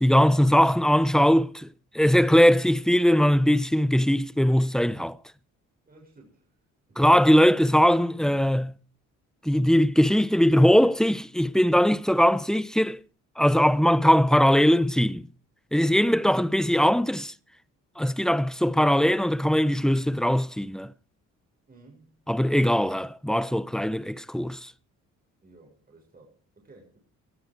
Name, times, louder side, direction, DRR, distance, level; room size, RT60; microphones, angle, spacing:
voice 1, 0.0-1.7 1.9-5.2 7.0-8.7 9.4-13.0 13.4-15.3 15.7-17.3 18.0-20.9 22.3-24.7, equal, ahead, 0.8 m, -20 dB
voice 2, 5.8-6.5 6.9-7.0 21.7-22.2 25.4-27.0, right 2 dB, 30° right, 6.6 m, -54 dB
18.5 x 13.5 x 4.7 m
cardioid pair, 90°, 30 cm